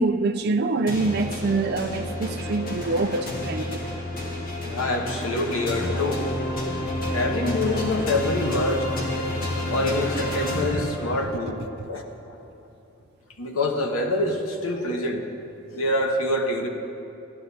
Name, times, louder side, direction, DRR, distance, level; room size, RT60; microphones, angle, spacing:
voice 1, 0.0-3.8, right 3 dB, 50° right, 5 dB, 0.5 m, -25 dB
sound 1, 0.9-11.5, left 1 dB, 45° left, 1.5 m, -30 dB
voice 2, 4.7-6.2 7.1-8.8 9.7-11.6 11.9-12.1 13.4-15.3 15.7-16.7, left 1 dB, 90° left, 2 dB, 1.2 m, -25 dB
14.5 x 11.5 x 4.2 m, 2.8 s
head